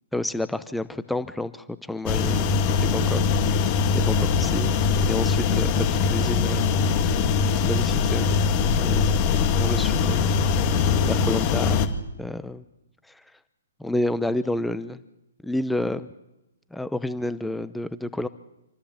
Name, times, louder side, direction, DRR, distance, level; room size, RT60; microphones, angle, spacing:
voice 1, 0.1-3.2 3.5-4.7 5.1-6.7 7.6-8.4 8.8-9.2 9.6-10.3 10.7-11.8 12.2-12.6 13.1-13.2 13.8-15.0 15.4-16.1 16.7-18.3, left 1 dB, 5° left, 14 dB, 0.8 m, -30 dB
sound 1, 2.1-11.9, left 5 dB, 35° left, 2.1 m, -22 dB
26.5 x 14.5 x 7.4 m, 0.94 s
hypercardioid pair, 130°, 0 cm